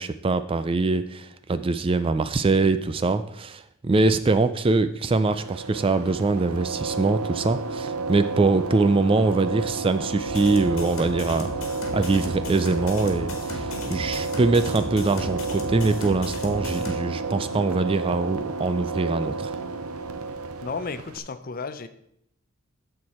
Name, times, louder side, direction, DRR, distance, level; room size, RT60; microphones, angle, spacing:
voice 1, 0.0-19.6, right 3 dB, 25° right, 12 dB, 0.3 m, -23 dB
sound 1, 5.2-21.2, right 3 dB, 80° right, 0.7 m, -31 dB
sound 2, 10.2-17.0, left 1 dB, 65° left, 1.8 m, -36 dB
voice 2, 20.6-21.9, left 4 dB, 40° left, 12 dB, 0.5 m, -33 dB
14.0 x 4.6 x 4.3 m, 0.75 s
head